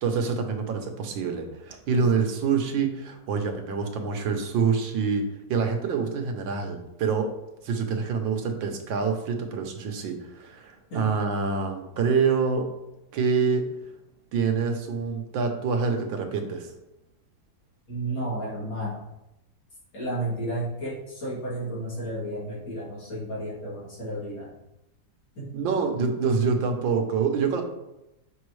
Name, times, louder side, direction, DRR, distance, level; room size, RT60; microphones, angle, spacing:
voice 1, 0.0-7.3 7.6-12.7 13.1-13.6 14.3-16.7 25.5-27.6, right 5 dB, 85° right, 4 dB, 1.7 m, -26 dB
voice 2, 17.9-19.0 19.9-24.5 25.4-25.5, right 1 dB, 80° left, -8 dB, 3.6 m, -32 dB
7.2 x 5.5 x 3.2 m, 0.90 s
omnidirectional pair, 2.0 m